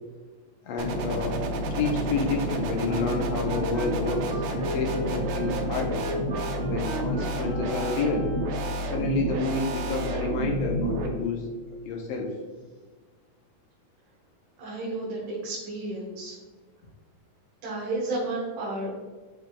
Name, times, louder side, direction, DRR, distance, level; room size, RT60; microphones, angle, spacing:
voice 1, 0.6-6.1 6.6-8.3 8.8-11.4 11.8-12.3, left 3 dB, 90° left, 1 dB, 1.5 m, -29 dB
sound 1, 0.8-11.1, right 1 dB, 85° right, 1.4 m, -30 dB
Wind instrument woodwind instrument, 2.8-8.8, right 1 dB, 20° right, 0.6 m, -37 dB
voice 2, 14.6-16.4 17.6-19.0, right 2 dB, 70° right, -6 dB, 2.8 m, -32 dB
11.5 x 4.0 x 2.3 m, 1.4 s
omnidirectional pair, 3.9 m